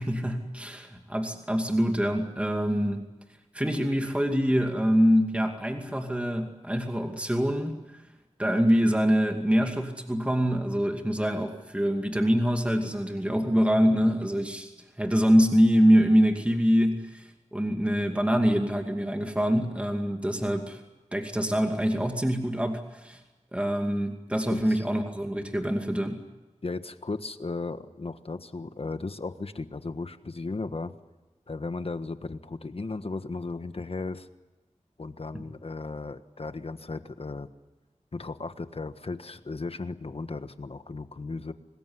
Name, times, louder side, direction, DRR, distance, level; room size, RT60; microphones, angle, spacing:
voice 1, 0.0-3.1 3.5-8.0 8.4-14.7 15.0-20.8 21.1-23.2 23.5-26.2 35.3-35.4, equal, 10° right, 4 dB, 2.4 m, -25 dB
voice 2, 26.6-30.9 31.5-34.3 35.0-37.5 38.1-41.5, left 3 dB, 55° left, 10 dB, 1.4 m, -35 dB
26.5 x 20.5 x 9.6 m, 1.1 s
wide cardioid pair, 85°, 12 cm